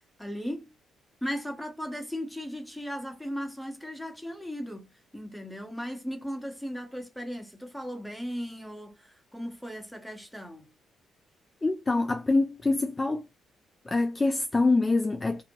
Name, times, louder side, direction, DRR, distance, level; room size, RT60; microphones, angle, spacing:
voice 1, 0.2-0.7 1.2-4.9 5.1-10.7, equal, ahead, 1.0 m, -37 dB
voice 2, 11.6-13.2 13.9-15.4, left 3 dB, 20° left, 0.3 m, -25 dB
2.6 x 2.4 x 2.9 m
cardioid pair, 90°, 0 cm